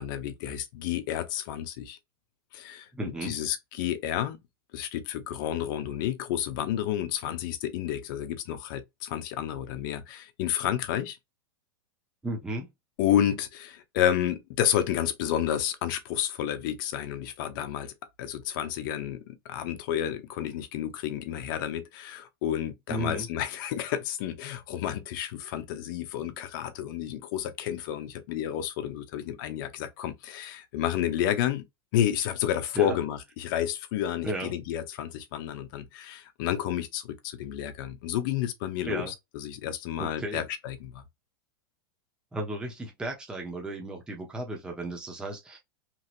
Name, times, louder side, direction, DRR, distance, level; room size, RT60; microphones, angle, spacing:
voice 1, 0.0-2.0 2.5-2.9 3.2-4.4 4.7-11.2 13.0-31.6 31.9-41.0, left 11 dB, 55° left, 0.7 m, -30 dB
voice 2, 2.9-3.3 12.2-12.7 22.9-23.3 32.7-33.0 34.2-34.5 38.8-39.1 40.0-40.5 42.3-45.6, right 1 dB, 5° right, 0.7 m, -34 dB
3.0 x 2.7 x 2.5 m
supercardioid pair, 140°, 13 cm